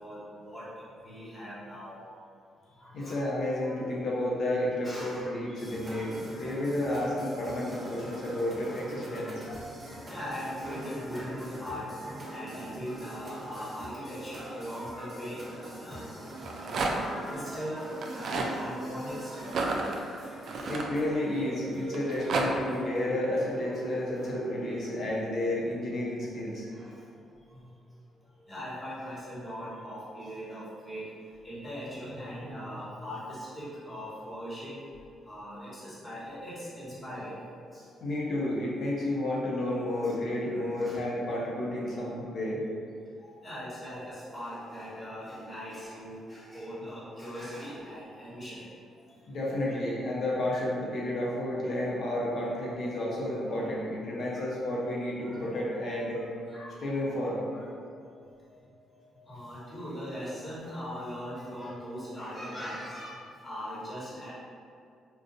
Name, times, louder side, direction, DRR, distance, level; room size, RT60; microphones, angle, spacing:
voice 1, 0.0-2.1 2.8-3.1 3.6-3.8 4.8-5.7 6.2-6.6 8.7-8.8 9.0-16.1 16.5-19.7 20.0-20.9 22.0-22.1 23.6-23.8 26.2-26.3 26.7-27.1 27.5-27.7 28.4-31.1 31.4-34.8 35.2-37.4 37.7-38.1 40.0-40.1 40.5-41.0 43.2-48.7 54.3-54.5 55.2-55.8 56.5-57.1 57.5-57.7 58.0-58.6 58.9-64.3, equal, 15° left, -9 dB, 1.3 m, -41 dB
voice 2, 2.9-9.5 20.6-26.6 38.0-42.6 49.3-56.2 56.8-57.4, left 1 dB, 60° left, -5 dB, 0.9 m, -31 dB
sound 1, 5.6-25.0, right 1 dB, 30° right, 0.8 m, -43 dB
Rattle, 16.3-17.2 17.9-18.5 19.4-21.4 21.9-22.5, right 3 dB, 60° right, 0.3 m, -31 dB
3.8 x 2.4 x 2.6 m, 2.3 s
cardioid pair, 90°, 0 cm